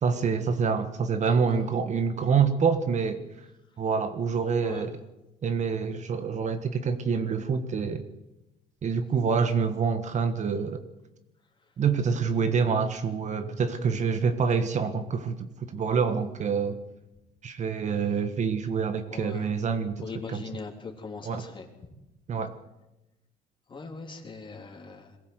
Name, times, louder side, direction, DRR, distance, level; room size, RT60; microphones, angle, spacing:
voice 1, 0.0-3.2 3.8-4.9 5.4-8.0 8.8-10.8 11.8-16.8 17.4-20.0 20.3-20.4 21.2-21.4 22.3-22.5, right 6 dB, 45° right, 9 dB, 1.5 m, -26 dB
voice 2, 1.3-1.6 4.6-4.9 18.1-18.2 19.1-19.5 20.0-21.7 23.7-25.2, left 4 dB, 30° left, 3 dB, 3.5 m, -40 dB
22.0 x 15.0 x 8.0 m, 0.94 s
cardioid pair, 110°, 17 cm